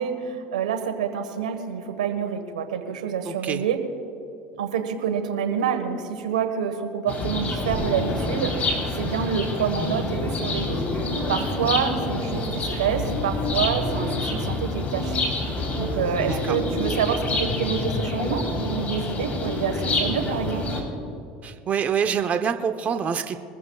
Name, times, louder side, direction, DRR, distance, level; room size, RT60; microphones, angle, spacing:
voice 1, 0.0-3.8 4.5-15.2 15.8-20.7, right 7 dB, 90° right, 7 dB, 1.4 m, -27 dB
voice 2, 3.3-3.6 11.6-11.7 16.2-16.6 21.4-23.4, right 7 dB, 40° right, 7 dB, 0.8 m, -26 dB
sound 1, 7.1-20.8, left 2 dB, 40° left, 3.6 m, -27 dB
22.5 x 14.5 x 2.4 m, 2.7 s
hypercardioid pair, 80°, 4 cm